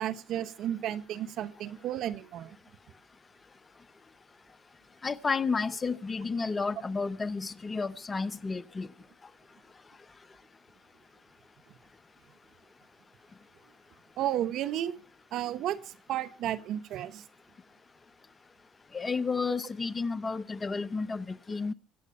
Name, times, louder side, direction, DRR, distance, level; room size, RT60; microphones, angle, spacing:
voice 1, 0.0-2.6 14.2-15.0 15.3-17.2, right 11 dB, 65° right, 1.0 m, -33 dB
voice 2, 5.0-8.9 18.9-21.7, left 4 dB, 25° left, 0.8 m, -31 dB
24.0 x 8.2 x 5.6 m
supercardioid pair, 75°, 0 cm